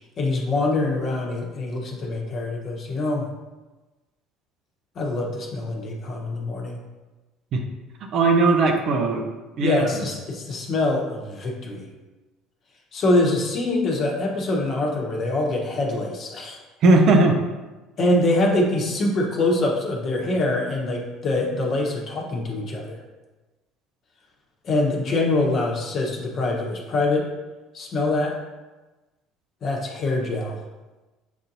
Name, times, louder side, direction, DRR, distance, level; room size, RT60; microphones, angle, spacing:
voice 1, 0.2-3.3 5.0-6.8 9.6-11.9 12.9-16.6 18.0-23.0 24.6-27.3 27.7-28.3 29.6-30.6, left 2 dB, 50° left, 0 dB, 1.0 m, -24 dB
voice 2, 8.1-9.2 9.6-10.0 16.8-17.3, right 3 dB, 55° right, 3 dB, 0.7 m, -18 dB
7.0 x 2.7 x 2.6 m, 1.2 s
hypercardioid pair, 65°, 0 cm